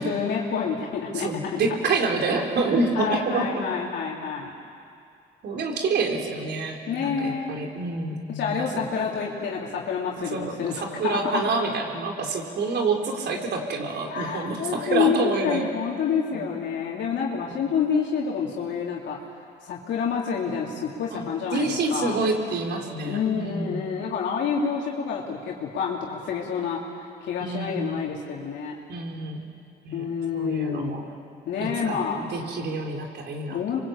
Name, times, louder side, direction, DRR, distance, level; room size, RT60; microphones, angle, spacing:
voice 1, 0.0-1.6 2.9-4.5 6.9-7.6 8.3-11.4 14.0-19.2 19.6-22.2 23.0-28.7 29.9-31.0 31.4-32.3 33.5-33.8, left 6 dB, 75° left, -3 dB, 3.4 m, -28 dB
voice 2, 1.1-3.7 5.4-8.8 10.3-15.8 16.3-16.5 17.5-17.6 21.1-21.2 21.5-23.8 27.4-28.0 28.9-29.5 29.8-30.0 30.3-31.1 31.6-33.8, right 3 dB, 65° right, 2 dB, 4.0 m, -27 dB
27.0 x 23.5 x 8.8 m, 2.4 s
cardioid pair, 105°, 19 cm